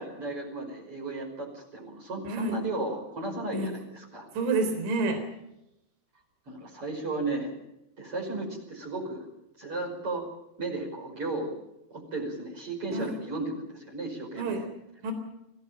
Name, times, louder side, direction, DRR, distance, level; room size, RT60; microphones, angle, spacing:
voice 1, 0.0-4.3 6.5-7.5 8.0-9.3 9.6-10.2 10.6-11.5 11.9-14.6, right 2 dB, 30° right, -1 dB, 6.0 m, -34 dB
voice 2, 2.3-2.6 3.5-3.7 4.3-5.2 12.9-13.1 14.4-14.6 15.0-15.1, right 3 dB, 80° right, 7 dB, 6.0 m, -28 dB
25.0 x 17.0 x 8.9 m, 0.87 s
omnidirectional pair, 5.3 m